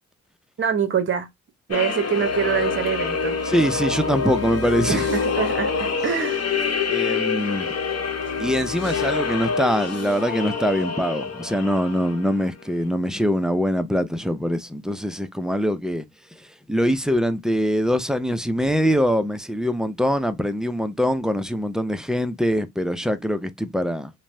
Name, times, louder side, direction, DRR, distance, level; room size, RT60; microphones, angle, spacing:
voice 1, 0.6-1.3 1.7-3.4 4.9-6.4, right 8 dB, 40° right, 0.8 m, -25 dB
sound 1, 1.7-12.5, left 5 dB, 55° left, 0.9 m, -26 dB
voice 2, 3.4-5.1 6.9-7.7 8.4-16.0 16.7-24.1, equal, ahead, 0.5 m, -23 dB
2.9 x 2.1 x 2.6 m
supercardioid pair, 60°, 30 cm